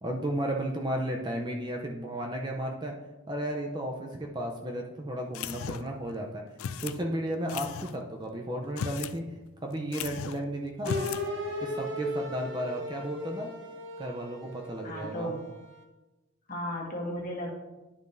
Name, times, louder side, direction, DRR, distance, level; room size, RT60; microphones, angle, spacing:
voice 1, 0.0-2.9 3.3-6.4 6.8-9.4 9.6-10.9 11.6-13.5 14.0-15.3, right 1 dB, 20° right, 1 dB, 0.6 m, -34 dB
sound 1, 5.3-6.0 6.6-7.0 7.5-7.9 8.6-9.2 9.5-9.6 9.9-10.4 10.8-11.3, left 7 dB, 90° left, 0.4 m, -36 dB
sound 2, 10.8-15.8, left 1 dB, 60° right, 0.9 m, -37 dB
voice 2, 14.8-15.4 16.5-17.5, equal, 40° left, -2 dB, 1.6 m, -34 dB
11.0 x 5.1 x 2.7 m, 1.1 s
head